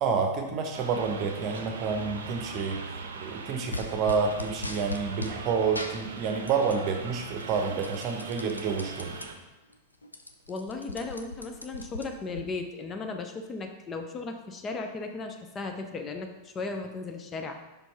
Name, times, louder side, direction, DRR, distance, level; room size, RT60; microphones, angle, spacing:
voice 1, 0.0-9.1, right 5 dB, 40° right, 4 dB, 0.9 m, -29 dB
sound 1, 0.7-9.3, right 4 dB, 60° right, 0.7 m, -41 dB
sound 2, 3.7-5.4 5.7-6.9 7.2-9.3 9.7-9.8 10.0-12.4, left 2 dB, 85° left, 0.5 m, -39 dB
voice 2, 10.5-17.5, left 3 dB, 25° left, 4 dB, 0.5 m, -36 dB
5.3 x 4.5 x 4.2 m, 1.1 s
figure-of-eight pair, 90°, 0 cm